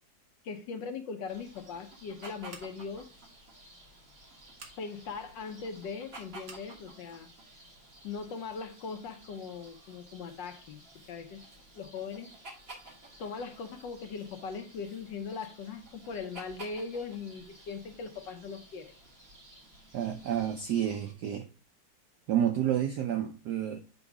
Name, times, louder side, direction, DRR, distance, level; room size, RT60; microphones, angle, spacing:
voice 1, 0.4-3.1 4.8-7.3 8.0-11.4 11.7-12.3 13.2-18.9, left 5 dB, 70° left, 1.2 m, -40 dB
sound 1, 1.3-21.1, right 1 dB, 30° right, 1.7 m, -53 dB
Scissors, 2.5-3.0 4.5-4.8 6.4-6.7, right 4 dB, 50° right, 1.8 m, -50 dB
voice 2, 19.9-21.5 22.3-23.8, right 10 dB, 75° right, 0.9 m, -30 dB
7.1 x 3.7 x 4.5 m
omnidirectional pair, 2.4 m